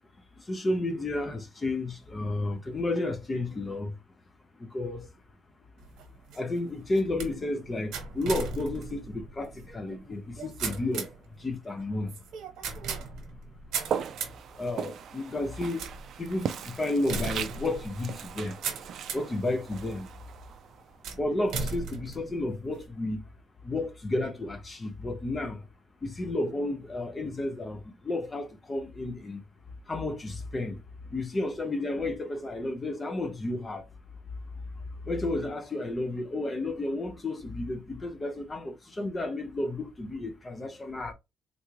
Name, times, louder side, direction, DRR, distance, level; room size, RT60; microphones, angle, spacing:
voice 1, 0.5-3.9 4.6-5.1 6.3-11.1 11.4-12.1 14.6-15.9 16.2-18.6 19.1-20.1 21.2-23.2 23.6-25.6 26.0-29.4 29.9-30.8 31.1-33.8 35.1-41.1, left 2 dB, 20° left, 0.4 m, -32 dB
sound 1, 5.8-19.4 20.0-20.4 21.0-22.9, right 5 dB, 75° right, 1.0 m, -38 dB
Walk footsteps, 13.8-21.0, right 8 dB, 50° right, 0.3 m, -38 dB
3.7 x 2.3 x 3.0 m
cardioid pair, 165°, 0 cm